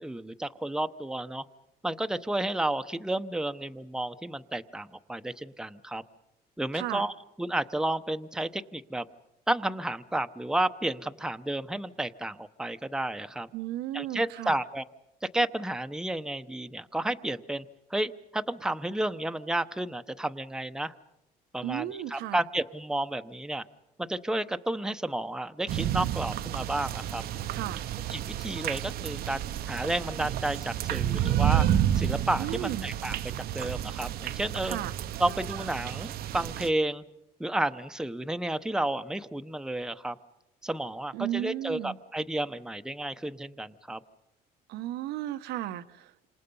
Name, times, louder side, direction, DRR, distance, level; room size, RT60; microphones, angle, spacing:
voice 1, 0.0-1.4 1.8-6.0 6.6-7.1 7.4-9.1 9.5-13.5 13.9-14.8 15.3-20.9 21.5-23.6 24.0-27.2 28.1-31.7 31.9-34.8 35.2-37.0 37.4-40.2 40.6-44.0, right 1 dB, 5° right, 9 dB, 0.9 m, -31 dB
voice 2, 6.7-7.1 13.5-14.6 21.6-22.4 27.5-27.8 32.4-32.9 34.6-34.9 41.1-42.0 44.7-46.3, right 13 dB, 85° right, 9 dB, 1.0 m, -34 dB
sound 1, 25.7-36.7, right 11 dB, 65° right, 0.8 m, -30 dB
28.5 x 26.5 x 5.5 m, 0.91 s
cardioid pair, 110°, 17 cm